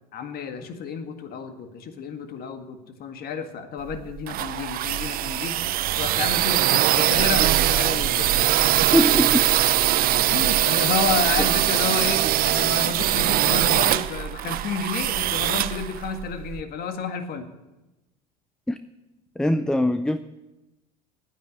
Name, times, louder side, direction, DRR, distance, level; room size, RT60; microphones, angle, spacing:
voice 1, 0.1-5.5 6.0-8.6 9.7-9.8 10.3-17.5, left 6 dB, 50° left, 7 dB, 1.9 m, -31 dB
sound 1, 3.9-16.6, right 13 dB, 50° right, 0.7 m, -22 dB
voice 2, 8.9-9.4 18.7-18.8 19.4-20.2, left 1 dB, 5° left, 12 dB, 0.5 m, -21 dB
9.5 x 9.5 x 9.9 m, 1.0 s
hypercardioid pair, 85°, 20 cm